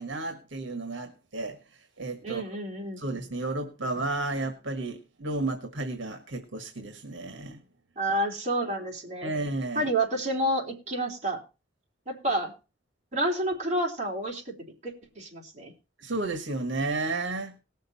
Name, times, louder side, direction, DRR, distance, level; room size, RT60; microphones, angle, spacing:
voice 1, 0.0-1.6 2.0-2.4 3.0-7.6 9.2-9.9 16.0-17.5, right 2 dB, 75° right, 6 dB, 1.6 m, -32 dB
voice 2, 2.2-3.0 8.0-9.3 9.7-11.4 12.1-12.5 13.1-14.4 14.8-15.7, right 1 dB, 35° right, -1 dB, 3.4 m, -29 dB
19.5 x 6.5 x 4.2 m, 0.31 s
head